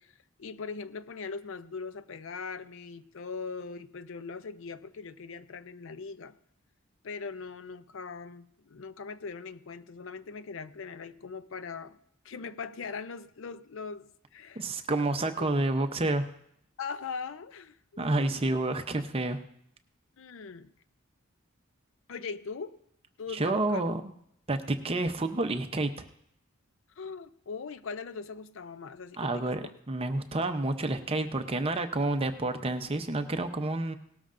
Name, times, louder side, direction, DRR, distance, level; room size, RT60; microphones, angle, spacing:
voice 1, 0.0-6.4 7.0-12.0 12.2-14.6 16.8-18.5 20.2-20.7 22.1-22.8 23.2-23.9 27.0-29.7, left 5 dB, 65° left, 14 dB, 0.5 m, -40 dB
voice 2, 14.6-16.3 18.0-19.4 23.3-24.1 24.5-26.1 29.2-33.9, right 2 dB, 30° right, 7 dB, 0.7 m, -29 dB
18.5 x 13.0 x 2.6 m, 0.73 s
head